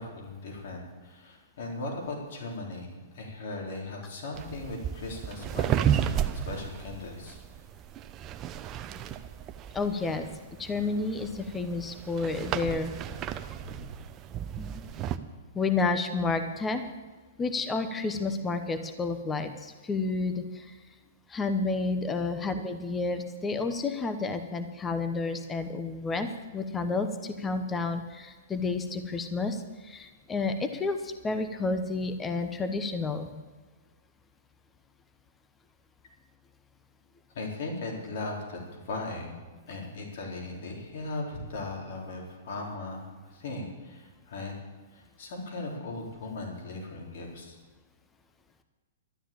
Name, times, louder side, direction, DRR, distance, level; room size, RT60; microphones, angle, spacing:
voice 1, 0.0-7.4 13.5-13.9 37.3-39.4 39.7-44.5 44.9-47.6, left 2 dB, 65° left, -1 dB, 4.0 m, -38 dB
sound 1, 4.3-15.2, right 9 dB, 25° right, 0.7 m, -33 dB
voice 2, 9.7-10.3 10.6-12.9 13.3-13.4 14.6-14.9 15.5-16.8 17.4-20.7 21.3-33.3, left 3 dB, 15° left, 8 dB, 0.9 m, -30 dB
12.5 x 10.0 x 8.7 m, 1.3 s
hypercardioid pair, 140°, 0 cm